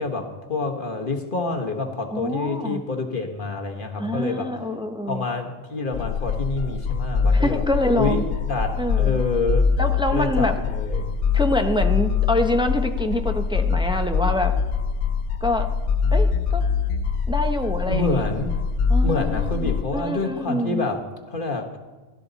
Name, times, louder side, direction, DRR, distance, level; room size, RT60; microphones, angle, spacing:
voice 1, 0.0-4.5 5.1-7.6 7.9-8.2 8.5-9.7 10.1-11.1 17.9-18.6 19.0-21.1 21.3-21.8, left 3 dB, 40° left, 4 dB, 1.4 m, -27 dB
voice 2, 2.1-2.8 4.0-5.2 7.3-8.2 8.8-9.2 9.8-10.6 11.3-14.5 15.4-15.7 16.1-16.6 17.3-18.2 18.9-20.9, left 1 dB, 5° right, 5 dB, 0.6 m, -25 dB
sound 1, 5.9-19.8, left 5 dB, 70° left, 1.1 m, -23 dB
16.5 x 12.5 x 4.0 m, 1.3 s
omnidirectional pair, 1.4 m